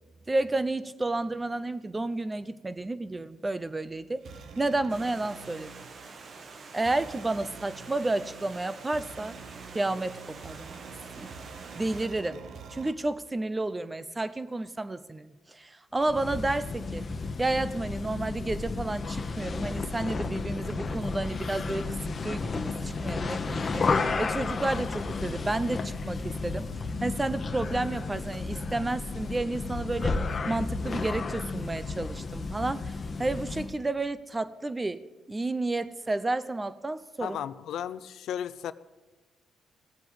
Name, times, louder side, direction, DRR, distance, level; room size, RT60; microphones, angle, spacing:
voice 1, 0.3-4.3 4.6-5.7 6.7-9.4 9.6-11.3 11.7-12.4 12.7-17.1 17.4-21.9 22.2-26.7 27.0-35.0 35.3-37.4, right 2 dB, 20° right, 15 dB, 0.7 m, -31 dB
sound 1, 3.6-12.9, right 5 dB, 65° right, 1.4 m, -47 dB
Stream, 4.9-12.1, right 4 dB, 45° right, 1.4 m, -47 dB
sound 2, 16.0-33.8, left 4 dB, 35° left, 1.1 m, -32 dB
voice 2, 37.2-38.7, left 10 dB, 75° left, 15 dB, 0.5 m, -34 dB
17.0 x 8.0 x 8.9 m, 1.2 s
cardioid pair, 90°, 0 cm